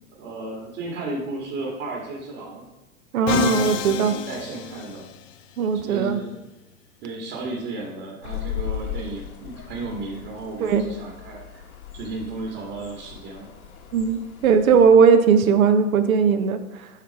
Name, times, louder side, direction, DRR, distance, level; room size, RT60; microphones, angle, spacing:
voice 1, 0.0-2.7 3.5-5.0 5.7-6.4 7.0-11.7 11.9-13.5, right 3 dB, 45° right, -3 dB, 2.3 m, -34 dB
voice 2, 3.1-4.2 5.6-6.2 10.6-10.8 13.9-16.9, right 6 dB, 70° right, 8 dB, 1.0 m, -18 dB
Musical instrument, 3.3-5.4, left 10 dB, 60° left, 0.8 m, -28 dB
sound 1, 8.2-14.9, left 10 dB, 80° left, 1.8 m, -37 dB
9.5 x 4.9 x 4.8 m, 1.0 s
hypercardioid pair, 105°, 43 cm